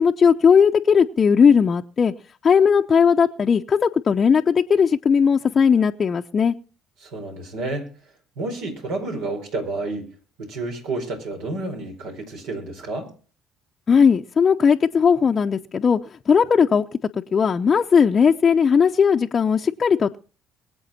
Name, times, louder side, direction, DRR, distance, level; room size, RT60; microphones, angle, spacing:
voice 1, 0.0-2.1 2.4-6.5 13.9-16.0 16.3-16.8 17.3-20.2, left 6 dB, 40° left, 3 dB, 0.7 m, -17 dB
voice 2, 7.0-7.9 8.4-10.1 10.4-13.1, right 2 dB, 75° right, 3 dB, 4.6 m, -30 dB
22.5 x 8.1 x 4.2 m, 0.37 s
hypercardioid pair, 60°, 0 cm